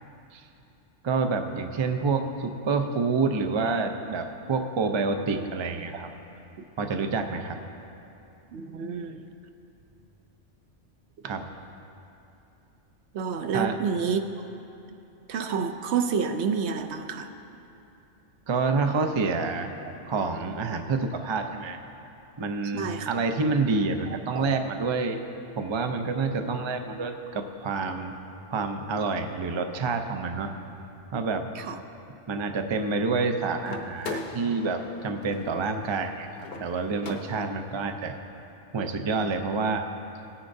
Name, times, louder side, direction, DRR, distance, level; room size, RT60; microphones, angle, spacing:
voice 1, 1.0-6.1 6.8-7.6 11.2-11.5 13.5-13.8 18.5-19.7 20.1-21.8 22.4-25.2 25.6-28.1 28.5-30.5 31.1-31.5 32.3-38.2 38.7-39.9, right 4 dB, 40° right, 5 dB, 0.4 m, -28 dB
voice 2, 8.5-9.2 13.1-14.2 15.3-17.3 22.7-23.1 24.3-24.4 31.7-31.8, right 6 dB, 70° right, 6 dB, 0.9 m, -28 dB
sound 1, 33.6-37.7, left 3 dB, 60° left, 0.9 m, -40 dB
18.0 x 9.8 x 2.6 m, 2.8 s
omnidirectional pair, 1.2 m